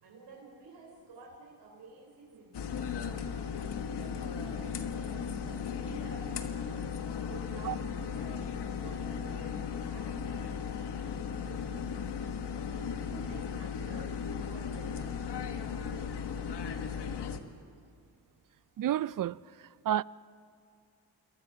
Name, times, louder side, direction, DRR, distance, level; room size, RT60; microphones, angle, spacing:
voice 1, 0.0-17.6, right 3 dB, 85° right, 3.9 m, -52 dB
sound 1, 2.5-17.4, left 7 dB, 75° left, 1.5 m, -36 dB
voice 2, 18.8-19.4 19.8-20.0, right 11 dB, 55° right, 0.5 m, -29 dB
28.0 x 22.0 x 5.8 m
cardioid pair, 90°, 41 cm